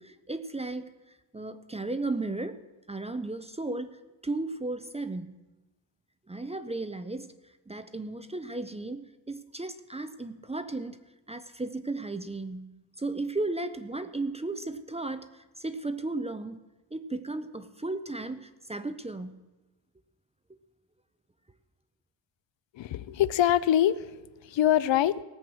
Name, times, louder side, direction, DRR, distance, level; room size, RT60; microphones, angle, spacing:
voice 1, 0.0-2.6 2.9-5.3 6.3-7.3 7.7-11.0 11.3-12.7 13.0-16.6 16.9-19.4, right 2 dB, 15° right, 11 dB, 0.4 m, -35 dB
voice 2, 22.7-24.2 24.4-25.2, left 11 dB, 70° left, 17 dB, 0.6 m, -24 dB
17.5 x 7.8 x 6.1 m, 1.1 s
wide cardioid pair, 140°, 46 cm